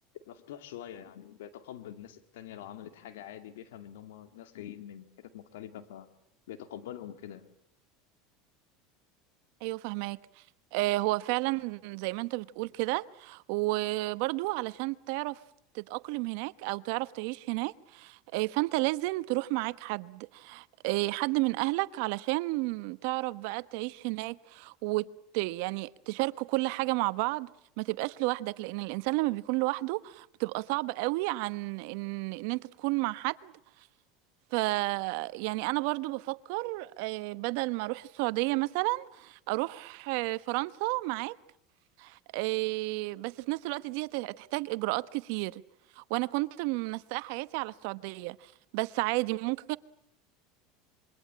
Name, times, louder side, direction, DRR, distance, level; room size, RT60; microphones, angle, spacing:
voice 1, 0.1-6.1 6.5-7.4, left 11 dB, 85° left, 2.4 m, -45 dB
voice 2, 9.6-10.2 10.7-15.4 15.7-25.1 25.3-27.5 27.8-33.5 34.5-41.4 42.0-45.6 46.0-49.8, right 22 dB, 70° right, 1.0 m, -32 dB
26.5 x 23.5 x 8.7 m
supercardioid pair, 115°, 0 cm